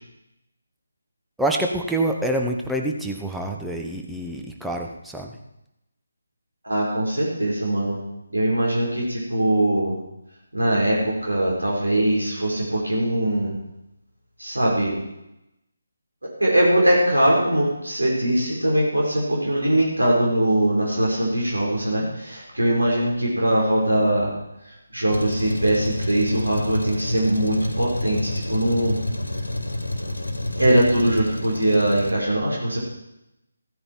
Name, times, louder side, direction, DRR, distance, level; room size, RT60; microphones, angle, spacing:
voice 1, 1.4-5.4, right 1 dB, ahead, 1 dB, 1.0 m, -26 dB
voice 2, 6.6-8.0 8.3-10.0 10.5-13.5 14.4-14.9 16.4-24.3 24.6-29.0 30.6-32.8, right 1 dB, 80° right, -3 dB, 4.4 m, -21 dB
Truck, 25.1-32.1, left 1 dB, 80° left, 1.6 m, -29 dB
15.5 x 9.8 x 4.5 m, 0.87 s
figure-of-eight pair, 150°, 0 cm